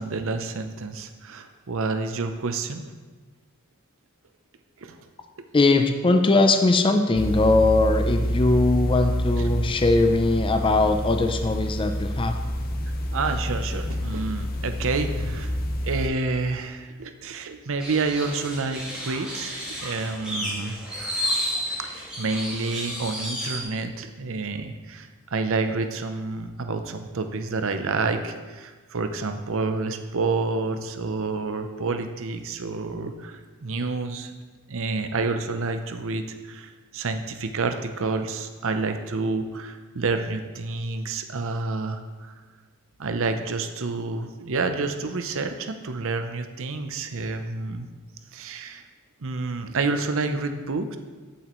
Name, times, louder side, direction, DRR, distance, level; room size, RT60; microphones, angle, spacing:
voice 1, 0.0-2.8 4.8-5.1 13.1-15.6 15.8-20.8 21.8-34.3 34.7-42.3 43.0-47.9 48.3-48.8 49.2-51.0, right 3 dB, 65° right, 7 dB, 0.7 m, -29 dB
voice 2, 5.5-12.3, left 2 dB, 25° left, 6 dB, 0.5 m, -20 dB
sound 1, 7.1-16.1, equal, 45° left, 0.9 m, -28 dB
sound 2, 17.8-23.6, equal, 5° right, 2.9 m, -32 dB
13.5 x 7.2 x 3.1 m, 1.4 s
head